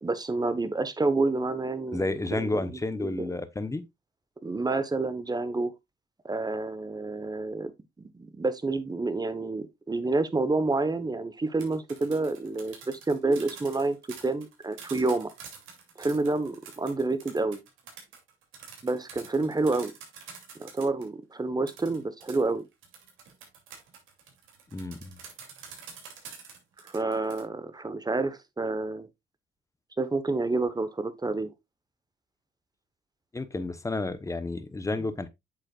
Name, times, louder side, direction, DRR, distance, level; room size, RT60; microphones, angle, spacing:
voice 1, 0.0-2.0 2.3-3.3 4.4-5.7 6.2-7.7 8.0-14.0 14.2-15.3 16.0-17.6 18.8-19.9 20.6-22.7 26.8-29.1 30.0-31.5, right 3 dB, 20° right, 1.1 m, -29 dB
voice 2, 1.9-3.8 24.7-25.2 33.3-35.3, left 2 dB, 15° left, 1.0 m, -31 dB
sound 1, 11.4-21.1 21.7-27.4, right 6 dB, 90° right, 2.7 m, -47 dB
8.5 x 6.5 x 2.4 m
cardioid pair, 90°, 20 cm